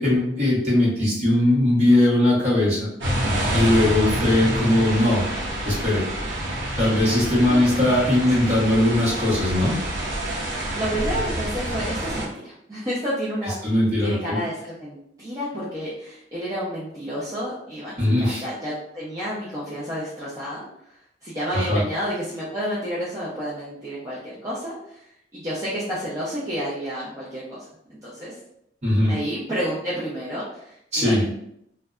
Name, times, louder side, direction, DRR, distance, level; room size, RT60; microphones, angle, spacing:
voice 1, 0.0-2.9 3.5-5.2 5.6-6.0 6.8-9.8 13.6-14.4 18.0-18.4 21.5-21.8 28.8-29.1 30.9-31.2, left 1 dB, 35° right, -7 dB, 1.0 m, -20 dB
sound 1, 3.0-12.3, right 1 dB, 85° right, 0.7 m, -27 dB
voice 2, 7.3-7.8 8.4-8.7 10.7-20.6 21.2-25.0 25.3-27.6 28.0-28.3 29.1-31.3, equal, 20° right, -9 dB, 0.5 m, -30 dB
2.5 x 2.1 x 2.3 m, 0.74 s
head